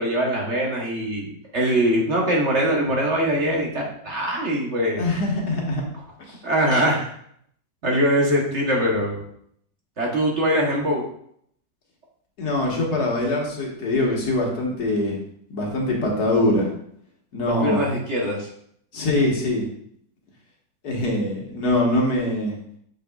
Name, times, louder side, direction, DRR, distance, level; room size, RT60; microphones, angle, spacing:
voice 1, 0.0-5.0 6.4-7.1 7.8-9.2 10.0-11.0 17.5-18.5, equal, 45° right, -2 dB, 1.3 m, -22 dB
voice 2, 5.0-5.8 6.2-6.4 12.4-15.2 15.5-16.7 17.3-17.9 18.9-19.7 20.8-22.5, left 1 dB, 70° left, -1 dB, 1.9 m, -23 dB
6.8 x 6.3 x 2.3 m, 0.68 s
omnidirectional pair, 1.8 m